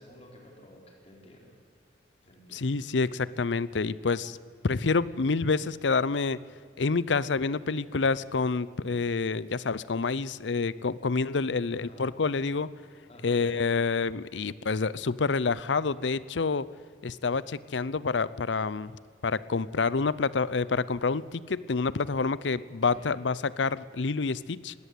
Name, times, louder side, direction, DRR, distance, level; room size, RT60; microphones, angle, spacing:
voice 1, 0.0-1.6 2.3-2.8 11.7-12.1 13.1-13.4 22.7-23.1, equal, 35° left, 1 dB, 4.6 m, -52 dB
voice 2, 2.5-4.4 4.6-6.4 6.8-12.7 13.2-16.7 17.0-24.7, left 4 dB, 90° left, 19 dB, 0.7 m, -28 dB
20.5 x 17.0 x 8.4 m, 2.1 s
head